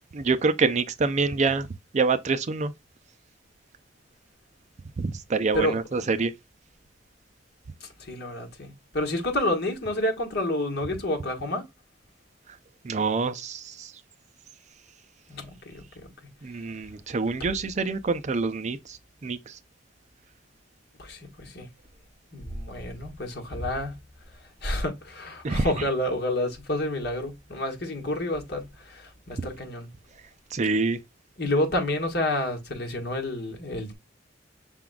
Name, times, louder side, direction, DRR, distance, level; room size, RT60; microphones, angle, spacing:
voice 1, 0.0-1.7 1.9-2.7 5.0-6.3 12.8-13.9 16.4-19.6 25.4-25.8 30.5-31.0, right 4 dB, 40° right, 0.4 m, -26 dB
voice 2, 8.1-11.6 15.3-15.8 21.1-21.2 21.5-21.7 22.3-23.9 24.6-28.7 29.3-29.9 31.4-33.9, left 1 dB, 60° left, 1.5 m, -29 dB
5.9 x 3.7 x 2.3 m
head